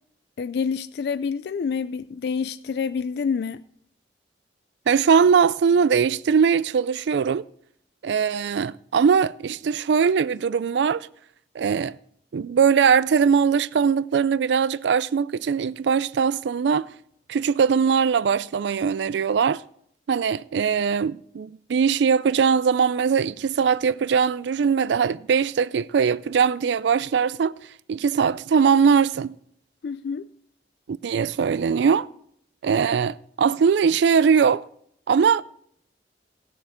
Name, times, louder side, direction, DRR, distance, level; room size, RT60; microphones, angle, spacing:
voice 1, 0.4-3.6 29.8-30.3, left 6 dB, 60° left, 0.3 m, -27 dB
voice 2, 4.9-7.5 8.0-11.1 11.5-12.0 12.3-16.9 17.3-19.6 20.1-27.5 27.9-29.3 30.9-32.1 32.6-34.6 35.1-35.4, right 6 dB, 70° right, 0.3 m, -21 dB
17.5 x 6.8 x 4.4 m
head